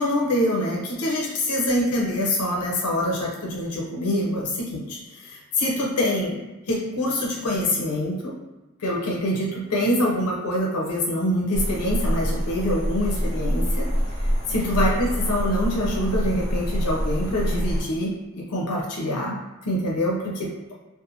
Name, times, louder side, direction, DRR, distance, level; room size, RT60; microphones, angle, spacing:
voice 1, 0.0-6.4 6.7-8.4 8.8-13.9 14.5-20.7, left 1 dB, 85° left, -2 dB, 0.6 m, -25 dB
sound 1, 11.5-17.8, equal, 30° right, 0.9 m, -26 dB
2.5 x 2.4 x 2.7 m, 1.1 s
head